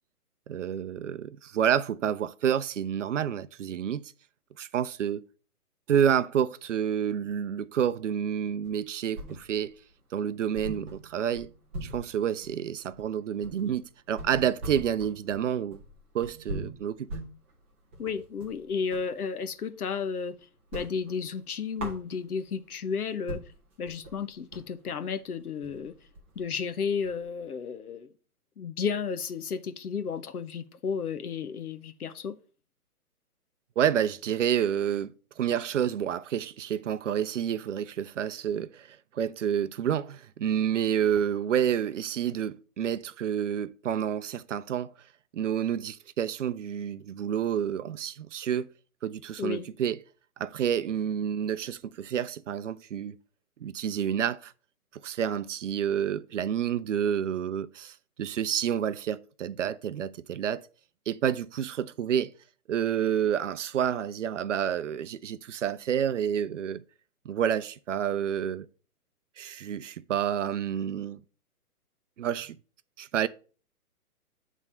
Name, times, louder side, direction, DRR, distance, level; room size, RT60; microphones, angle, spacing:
voice 1, 0.5-4.1 4.6-5.2 5.9-9.8 10.1-11.5 11.8-15.8 16.1-17.1 33.8-44.9 45.3-48.7 49.0-50.0 50.4-53.2 53.6-54.5 54.9-60.6 61.1-62.3 62.7-66.8 67.2-68.7 69.4-71.2 72.2-72.6 73.0-73.3, right 9 dB, 55° right, 0.6 m, -29 dB
sound 1, 8.6-9.8 10.1-10.2 10.5-19.1 19.5-20.3 20.6-22.6 23.0-23.1 23.3-27.4, right 1 dB, 10° right, 0.5 m, -42 dB
voice 2, 18.0-20.4 20.7-23.4 23.8-25.9 26.4-28.1 28.6-32.4 49.4-49.7, left 6 dB, 80° left, 1.0 m, -33 dB
8.8 x 3.6 x 5.5 m
hypercardioid pair, 145°, 44 cm